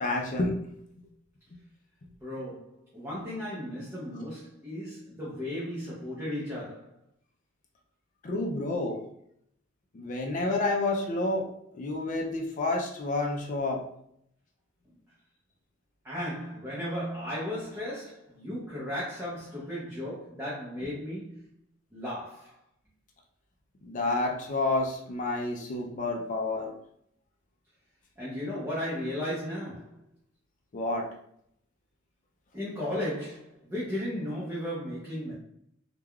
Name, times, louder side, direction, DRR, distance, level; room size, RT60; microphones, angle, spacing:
voice 1, 0.0-0.6 8.2-9.0 9.9-11.5 11.7-13.8 23.8-26.7 30.7-31.1, left 2 dB, 40° left, 0.4 m, -29 dB
voice 2, 2.2-7.0 16.0-21.4 21.9-22.6 28.2-30.0 32.5-35.3, left 1 dB, 10° right, 0.6 m, -35 dB
3.3 x 2.2 x 2.3 m
head